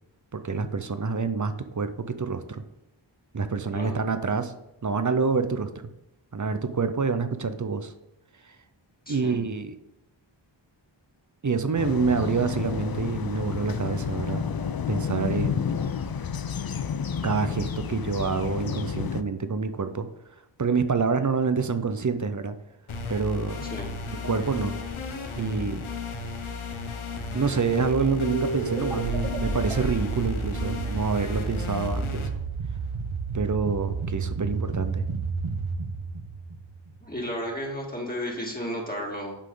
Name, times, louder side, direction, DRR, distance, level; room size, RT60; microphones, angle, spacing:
voice 1, 0.3-2.6 3.3-4.5 4.8-5.7 6.3-7.9 8.4-8.6 9.1-9.8 11.4-14.4 14.9-15.6 17.2-20.1 20.6-22.6 23.1-23.7 24.1-24.8 25.3-25.8 27.3-32.3 33.3-35.0, right 5 dB, 40° right, 10 dB, 0.7 m, -27 dB
voice 2, 9.1-9.4 23.7-23.9 37.0-39.4, equal, 20° left, -2 dB, 2.0 m, -33 dB
sound 1, 11.8-19.2, left 7 dB, 50° left, 0.5 m, -30 dB
sound 2, 22.9-32.3, left 4 dB, 80° left, 0.9 m, -34 dB
sound 3, 27.8-37.1, right 4 dB, 80° right, 1.0 m, -31 dB
8.4 x 5.6 x 3.9 m, 0.89 s
wide cardioid pair, 55°, 48 cm